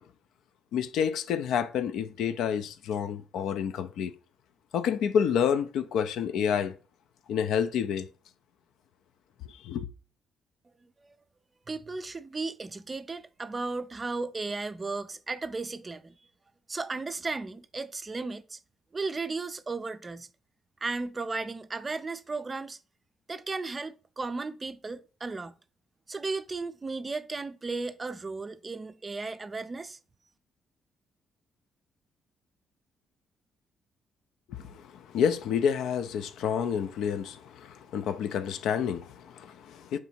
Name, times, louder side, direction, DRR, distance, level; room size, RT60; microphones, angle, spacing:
voice 1, 0.7-4.1 4.7-6.7 7.3-8.1 9.6-9.9 34.6-40.0, left 7 dB, 80° left, 0.4 m, -29 dB
voice 2, 10.8-11.2 11.7-16.1 16.7-18.6 18.9-20.3 20.8-22.8 23.3-25.5 26.1-30.0, right 3 dB, 30° right, 0.4 m, -35 dB
3.6 x 2.8 x 4.2 m
cardioid pair, 90°, 0 cm